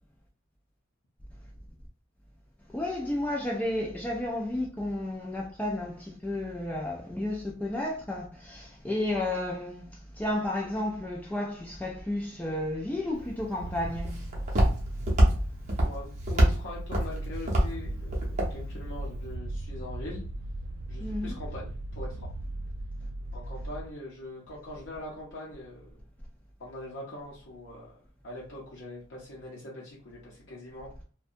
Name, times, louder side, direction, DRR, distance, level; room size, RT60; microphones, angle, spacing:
voice 1, 2.7-14.4 21.0-21.3, left 1 dB, 10° left, 0.3 m, -32 dB
Walk footsteps, 13.1-19.3, equal, 35° right, 0.7 m, -27 dB
sound 1, 13.6-23.9, right 1 dB, 85° right, 0.3 m, -38 dB
voice 2, 15.8-20.2 20.9-22.3 23.3-26.0 26.6-28.0 28.2-31.0, left 1 dB, 60° left, 0.7 m, -42 dB
2.6 x 2.2 x 2.5 m
head